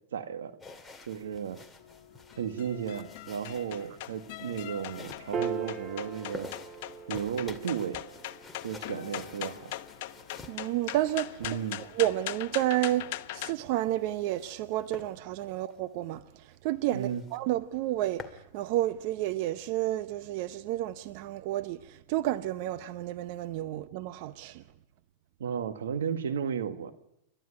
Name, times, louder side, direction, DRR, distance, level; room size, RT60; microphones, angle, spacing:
voice 1, 0.1-0.5 1.1-1.6 2.4-6.6 7.1-8.0 8.6-9.7 11.4-11.8 16.9-17.2 25.4-26.9, right 8 dB, 90° right, 1.7 m, -34 dB
sound 1, 0.6-12.3 13.6-14.6 14.9-15.1 15.6-15.8 16.2-16.3 16.5-16.6 16.9-17.4 17.8-18.4, left 3 dB, 10° left, 2.3 m, -49 dB
sound 2, 1.8-13.5, left 15 dB, 60° left, 1.0 m, -41 dB
Piano, 5.3-12.0, right 6 dB, 25° right, 1.2 m, -41 dB
voice 2, 10.5-11.4 12.0-16.2 16.6-18.2 18.5-24.6, right 14 dB, 55° right, 0.8 m, -30 dB
28.5 x 12.5 x 9.8 m
hypercardioid pair, 130°, 0 cm